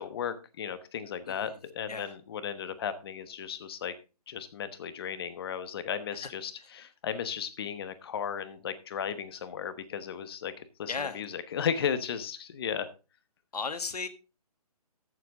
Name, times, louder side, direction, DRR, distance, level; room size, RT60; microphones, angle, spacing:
voice 1, 0.0-3.9 4.3-12.9, left 8 dB, 40° left, 12 dB, 1.1 m, -35 dB
voice 2, 1.2-1.6 1.9-2.1 6.2-6.3 6.6-6.7 10.9-11.2 13.5-14.1, left 4 dB, 80° left, 10 dB, 1.6 m, -35 dB
14.0 x 7.2 x 3.7 m, 0.31 s
hypercardioid pair, 155°, 20 cm